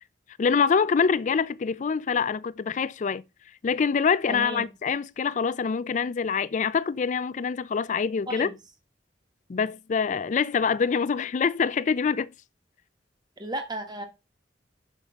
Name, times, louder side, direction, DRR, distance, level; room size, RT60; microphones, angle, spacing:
voice 1, 0.4-3.2 3.6-8.5 9.5-12.3, left 6 dB, 40° left, 0.4 m, -25 dB
voice 2, 4.3-4.7 8.3-8.5 13.4-14.0, right 1 dB, 25° right, 1.4 m, -34 dB
6.7 x 5.3 x 4.9 m
head